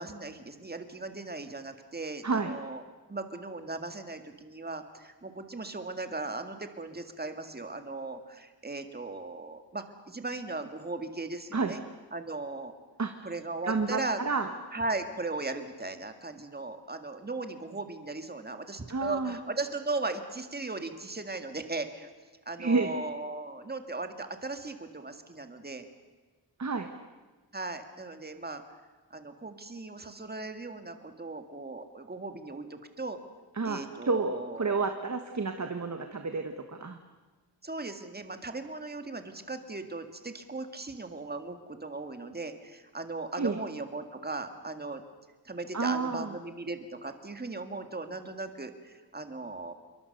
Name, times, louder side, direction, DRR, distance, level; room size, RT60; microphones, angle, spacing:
voice 1, 0.0-2.8 3.1-11.8 12.1-12.7 13.2-14.2 14.7-22.1 22.5-25.8 27.5-28.6 29.1-33.2 33.6-34.8 37.6-45.0 45.5-49.7, right 3 dB, 25° right, 7 dB, 2.0 m, -37 dB
voice 2, 2.2-2.5 11.5-11.7 13.0-13.1 13.6-14.5 18.9-19.4 22.6-22.9 26.6-26.9 33.5-37.0 43.4-43.6 45.7-46.4, right 4 dB, 40° right, 6 dB, 1.5 m, -30 dB
27.5 x 23.0 x 6.7 m, 1.3 s
wide cardioid pair, 110°, 41 cm